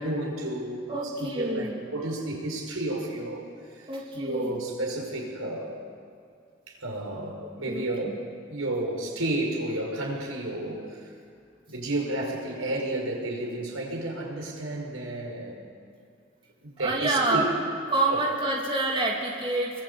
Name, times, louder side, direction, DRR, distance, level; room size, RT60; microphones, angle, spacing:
voice 1, 0.0-5.8 6.7-8.2 8.5-11.1 11.7-15.7 16.6-17.5 18.1-18.2, right 1 dB, 85° right, 1 dB, 5.3 m, -32 dB
voice 2, 0.9-1.8 3.9-4.6 7.4-7.8 16.8-17.5 17.9-19.8, right 2 dB, 25° right, -2 dB, 2.8 m, -27 dB
26.0 x 23.0 x 8.3 m, 2.3 s
head